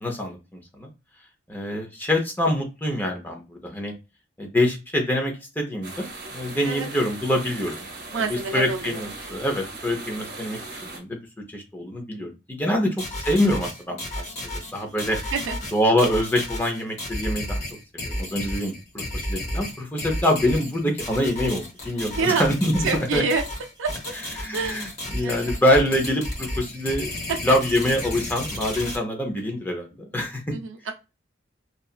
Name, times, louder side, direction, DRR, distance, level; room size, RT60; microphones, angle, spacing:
voice 1, 0.0-0.9 1.5-3.9 4.4-8.2 8.5-11.2 11.5-12.9 13.2-14.2 14.7-15.2 15.7-17.6 17.9-18.7 19.1-22.9 23.1-23.2 24.4-27.1 27.4-29.9 30.1-30.4, left 1 dB, 10° left, 2 dB, 0.6 m, -25 dB
sound 1, 5.8-11.0, right 2 dB, 50° right, 0.8 m, -38 dB
voice 2, 8.1-9.0 12.7-12.8 15.3-15.6 22.1-22.5 22.8-23.4 23.8-24.1 24.5-24.8 25.2-25.6 27.3-27.4 30.5-30.9, right 4 dB, 85° right, 5 dB, 0.4 m, -27 dB
sound 2, 13.0-29.0, left 1 dB, 35° left, 1.0 m, -32 dB
2.8 x 2.3 x 2.3 m, 0.27 s
head